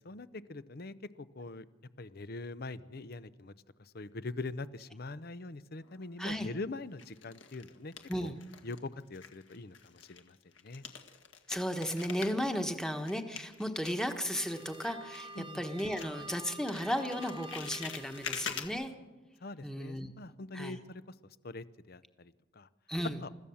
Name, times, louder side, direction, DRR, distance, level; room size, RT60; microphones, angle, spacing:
voice 1, 0.0-1.7 2.0-3.5 3.8-7.9 8.2-8.3 8.6-10.4 10.6-10.8 15.3-15.6 19.4-21.0 21.4-22.7 23.2-23.3, left 3 dB, 45° left, 15 dB, 0.7 m, -43 dB
sound 1, 5.8-6.4 7.0-8.9 9.1-15.5 15.8-18.7, left 6 dB, 60° left, 1.9 m, -45 dB
voice 2, 6.2-6.5 8.1-8.3 11.5-18.9 19.6-20.1 20.5-20.8 22.9-23.2, equal, 5° left, 5 dB, 1.3 m, -35 dB
sound 2, 13.9-18.8, right 2 dB, 25° right, 1.0 m, -49 dB
29.5 x 14.5 x 7.1 m, 1.2 s
head